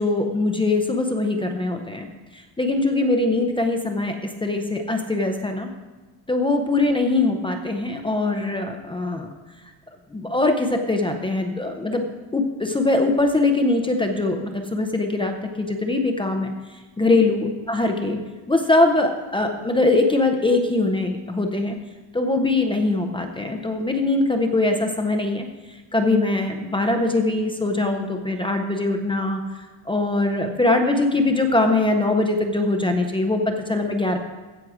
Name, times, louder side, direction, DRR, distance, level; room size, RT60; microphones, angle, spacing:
voice 1, 0.0-2.1 2.3-5.7 6.3-9.3 10.1-12.0 12.3-18.2 18.5-21.8 22.1-29.4 29.9-34.2, left 2 dB, 10° left, 4 dB, 0.5 m, -22 dB
16.0 x 6.0 x 4.9 m, 1.2 s
cardioid pair, 180°, 46 cm